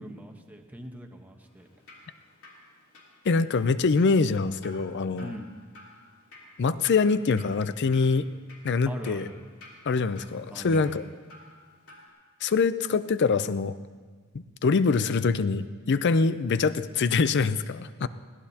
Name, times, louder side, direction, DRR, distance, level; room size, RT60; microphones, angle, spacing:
voice 1, 0.0-1.7 5.2-5.5 8.9-9.3 10.5-11.0, equal, 10° right, 2 dB, 1.1 m, -41 dB
Drip, 1.5-12.1, left 2 dB, 75° left, 3.1 m, -53 dB
voice 2, 3.3-5.3 6.6-8.3 8.6-9.3 9.9-11.1 12.4-13.7 14.3-18.1, left 4 dB, 55° left, 14 dB, 0.5 m, -24 dB
21.0 x 17.5 x 2.9 m, 1.5 s
head